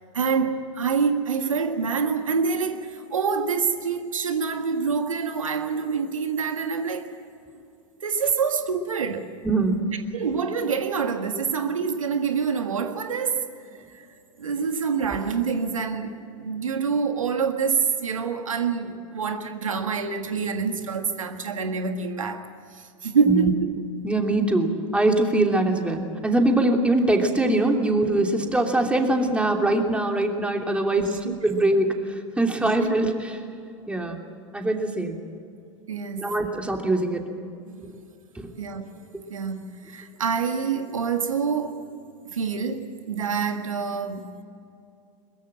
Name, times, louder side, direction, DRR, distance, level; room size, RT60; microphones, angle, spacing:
voice 1, 0.1-7.1 8.0-9.3 10.1-13.5 13.9-14.1 14.4-23.7 31.0-31.4 32.6-32.9 35.9-36.3 37.6-37.9 38.6-39.1 39.3-41.9 42.3-44.3, right 5 dB, 85° right, 1.7 m, -26 dB
voice 2, 9.4-9.8 23.3-23.5 24.0-33.1 33.9-34.2 34.5-35.2 36.2-37.3 38.3-38.5, right 2 dB, 5° right, 2.9 m, -22 dB
22.5 x 21.5 x 7.6 m
hypercardioid pair, 90°, 17 cm